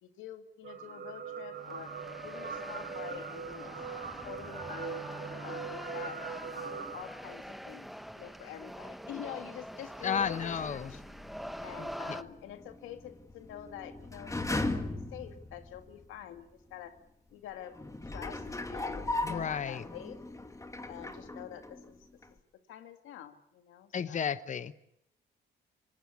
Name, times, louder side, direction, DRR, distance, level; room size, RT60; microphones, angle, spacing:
voice 1, 0.0-2.0 2.2-4.0 4.2-5.1 5.4-6.2 6.5-7.9 8.2-11.0 11.6-17.0 17.3-17.8 18.0-20.2 20.9-22.0 22.3-24.3, left 11 dB, 90° left, 8 dB, 2.0 m, -46 dB
sound 1, 0.6-7.0, right 6 dB, 55° right, 5.4 m, -41 dB
sound 2, 1.6-12.2, equal, ahead, 1.0 m, -44 dB
voice 2, 10.0-10.9 11.8-12.2 19.2-19.8 23.9-24.8, left 7 dB, 40° left, 13 dB, 1.0 m, -33 dB
sound 3, 10.0-16.1 16.7-16.8 17.7-22.0 22.2-22.3, left 2 dB, 15° left, 2.2 m, -39 dB
25.5 x 19.0 x 8.4 m, 0.76 s
cardioid pair, 90°, 20 cm